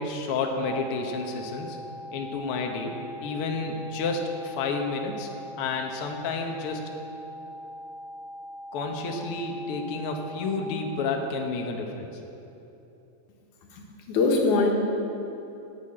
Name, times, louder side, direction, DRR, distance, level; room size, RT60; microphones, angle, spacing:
voice 1, 0.0-1.8 2.1-2.9 3.2-5.3 5.6-6.8 8.7-12.1, left 4 dB, 60° left, 2 dB, 1.6 m, -30 dB
sound 1, 0.6-10.6, equal, 45° right, 1.3 m, -41 dB
voice 2, 13.7-14.7, left 3 dB, 80° left, 0 dB, 2.8 m, -23 dB
9.3 x 8.4 x 8.7 m, 2.9 s
omnidirectional pair, 3.4 m